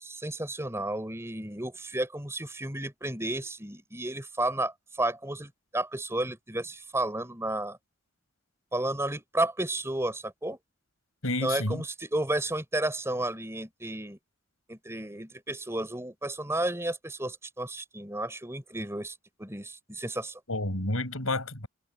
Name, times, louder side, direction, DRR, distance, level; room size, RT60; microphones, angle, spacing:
voice 1, 0.0-7.8 8.7-10.6 11.4-14.2 14.7-20.4, right 1 dB, 15° right, 4.3 m, -32 dB
voice 2, 11.2-11.8 20.5-21.7, left 2 dB, 90° left, 7.0 m, -30 dB
head